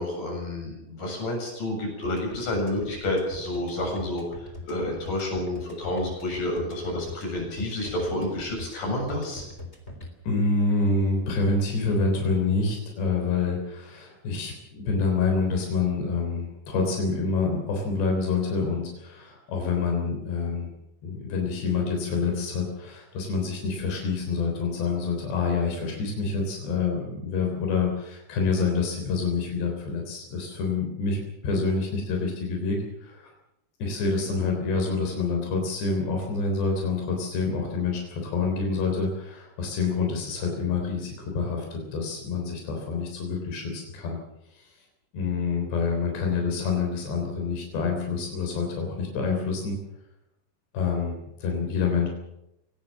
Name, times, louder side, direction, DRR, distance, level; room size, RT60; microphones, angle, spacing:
voice 1, 0.0-4.3 4.7-9.4, left 1 dB, 50° left, 0 dB, 9.0 m, -29 dB
sound 1, 2.0-10.1, left 2 dB, 15° left, 3.6 m, -40 dB
voice 2, 10.3-20.7 21.0-33.3 33.8-44.2 45.1-49.8 50.7-51.2 51.4-52.1, left 4 dB, 90° left, 2 dB, 5.8 m, -27 dB
22.5 x 18.0 x 7.5 m, 0.84 s
omnidirectional pair, 4.7 m